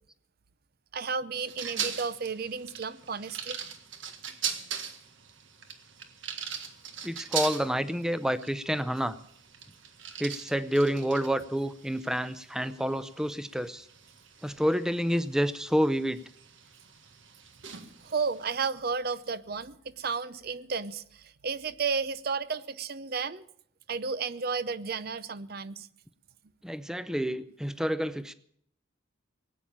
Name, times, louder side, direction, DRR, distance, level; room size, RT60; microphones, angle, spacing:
voice 1, 0.9-3.6 18.0-23.4 23.9-25.9, right 5 dB, 50° right, 0.6 m, -33 dB
sound 1, 1.5-18.5, right 8 dB, 70° right, 1.6 m, -41 dB
voice 2, 7.0-9.2 10.2-13.9 14.4-16.2 26.6-28.3, equal, 5° right, 0.6 m, -28 dB
18.5 x 9.0 x 8.7 m
head